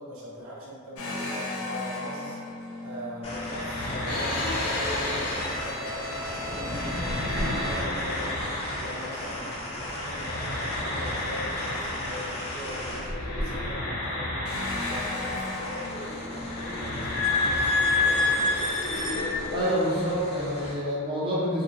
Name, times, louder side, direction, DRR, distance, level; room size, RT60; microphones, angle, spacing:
voice 1, 0.0-2.4 2.8-8.4 8.8-18.9, equal, 70° right, -5 dB, 0.6 m, -41 dB
sound 1, 1.0-9.6 9.9-19.6, left 2 dB, 85° left, 0.5 m, -30 dB
sound 2, 3.2-13.1 14.4-20.7, left 1 dB, 30° left, 0.4 m, -37 dB
voice 2, 19.5-21.6, equal, 25° right, -8 dB, 0.5 m, -27 dB
2.4 x 2.0 x 2.5 m, 2.1 s
head